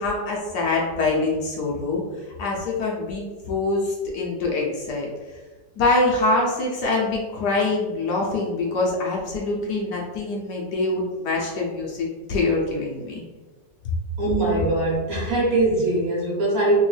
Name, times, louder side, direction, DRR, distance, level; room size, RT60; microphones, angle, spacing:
voice 1, 0.0-2.0 2.4-5.1 5.8-13.2, left 2 dB, 70° left, -2 dB, 1.2 m, -24 dB
voice 2, 14.2-16.8, right 2 dB, 55° right, -5 dB, 1.5 m, -22 dB
3.5 x 3.0 x 3.2 m, 1.3 s
omnidirectional pair, 2.0 m